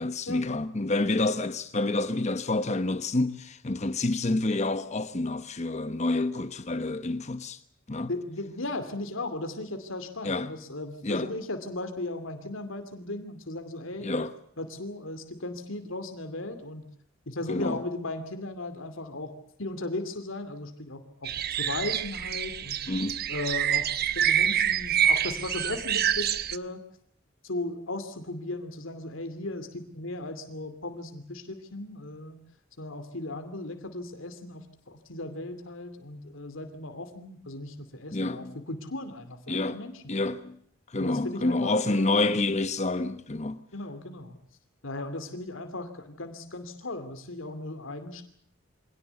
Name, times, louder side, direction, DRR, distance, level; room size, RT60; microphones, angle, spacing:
voice 1, 0.0-7.6 7.9-8.1 10.2-10.5 11.0-11.3 14.0-14.3 17.5-17.8 22.9-23.3 38.1-38.6 39.5-40.6 40.9-43.6, left 2 dB, 35° left, 1.0 m, -28 dB
voice 2, 8.1-14.1 14.6-16.9 17.3-19.3 19.6-22.8 23.3-26.8 27.4-32.4 32.8-40.2 40.9-42.2 43.7-44.4 44.8-48.2, left 2 dB, 85° left, 2.6 m, -36 dB
sound 1, 21.2-26.6, right 9 dB, 50° right, 1.0 m, -27 dB
25.0 x 18.0 x 8.2 m
head